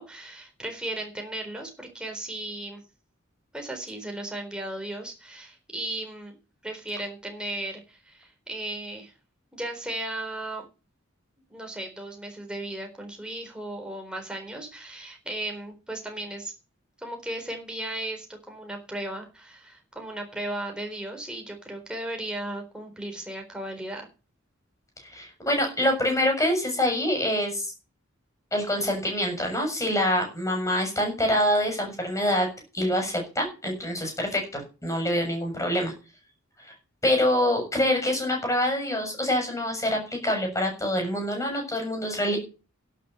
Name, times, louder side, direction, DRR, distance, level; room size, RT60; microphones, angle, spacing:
voice 1, 0.0-2.8 3.5-6.3 6.6-9.1 9.5-10.6 11.5-16.5 17.0-24.1, right 1 dB, 5° right, 2 dB, 4.0 m, -36 dB
voice 2, 25.1-27.7 28.5-32.5 32.7-35.9 36.6-36.7 37.0-42.4, left 1 dB, 15° left, 3 dB, 6.9 m, -25 dB
11.5 x 9.8 x 6.9 m, 0.32 s
head